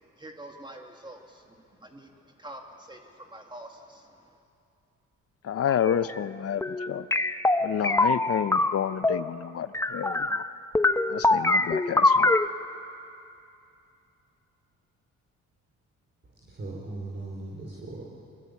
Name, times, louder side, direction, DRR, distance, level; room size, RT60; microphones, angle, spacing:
voice 1, 0.2-4.3, right 1 dB, 15° right, 2 dB, 2.2 m, -46 dB
voice 2, 5.4-7.1 7.6-10.4 11.1-12.4, left 9 dB, 50° left, 14 dB, 0.7 m, -30 dB
sound 1, 5.7-6.2 6.6-9.3 9.7-10.5 10.8-12.5, left 2 dB, 10° left, 0.8 m, -24 dB
voice 3, 16.4-18.0, right 2 dB, 40° right, -4 dB, 4.9 m, -38 dB
24.5 x 21.0 x 8.5 m, 2.6 s
cardioid pair, 90°, 30 cm